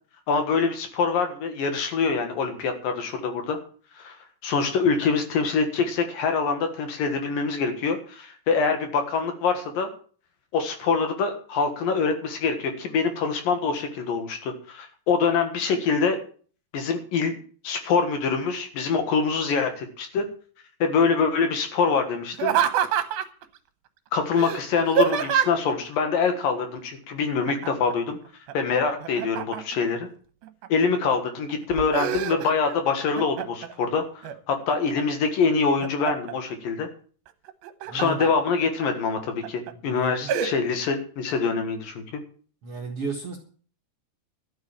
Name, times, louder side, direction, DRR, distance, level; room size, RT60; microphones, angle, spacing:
voice 1, 0.3-3.6 4.0-4.2 4.4-9.9 10.5-16.2 16.7-17.4 17.6-20.3 20.8-22.5 24.1-28.2 28.5-30.1 30.7-36.9 37.9-42.2, left 5 dB, 65° left, 7 dB, 3.0 m, -25 dB
Laughter, 22.3-23.4 24.4-25.7 27.5-27.9 28.3-29.9 30.4-31.1 31.5-32.8 33.1-33.7 34.2-35.0 35.5-36.3 37.5-38.3 38.8-38.9 39.4-39.7 40.3-40.5, right 9 dB, 75° right, 2.7 m, -26 dB
voice 2, 37.9-38.2 39.8-40.3 42.6-43.4, right 4 dB, 50° right, 0 dB, 1.8 m, -33 dB
12.5 x 8.7 x 7.2 m, 0.43 s
omnidirectional pair, 4.7 m